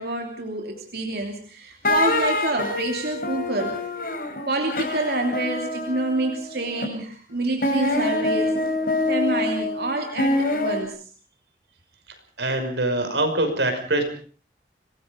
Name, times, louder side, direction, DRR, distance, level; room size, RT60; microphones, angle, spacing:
voice 1, 0.0-3.7 4.5-8.6 9.1-11.0, right 2 dB, 60° right, 3 dB, 3.1 m, -27 dB
sound 1, 1.8-6.9 7.6-10.8, left 2 dB, 50° left, 4.9 m, -25 dB
voice 2, 12.4-14.0, right 1 dB, 90° right, 6 dB, 5.7 m, -23 dB
26.0 x 20.5 x 5.2 m, 0.43 s
head